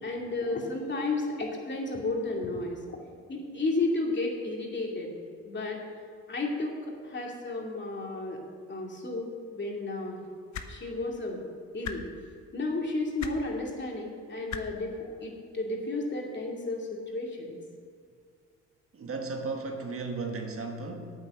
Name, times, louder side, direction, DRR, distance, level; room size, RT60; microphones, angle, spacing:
voice 1, 0.0-3.0 3.3-5.1 5.4-5.8 6.3-6.8 7.0-8.4 8.7-10.2 10.7-11.4 11.7-12.0 12.5-17.6, left 2 dB, 35° left, 0 dB, 2.5 m, -32 dB
sound 1, 10.5-10.7 11.8-12.0 13.2-13.3 14.5-14.6 15.9-16.0, left 8 dB, 65° left, 1.0 m, -36 dB
voice 2, 18.9-21.1, right 3 dB, 45° right, 3 dB, 1.6 m, -35 dB
9.2 x 8.6 x 6.5 m, 2.2 s
cardioid pair, 90°, 30 cm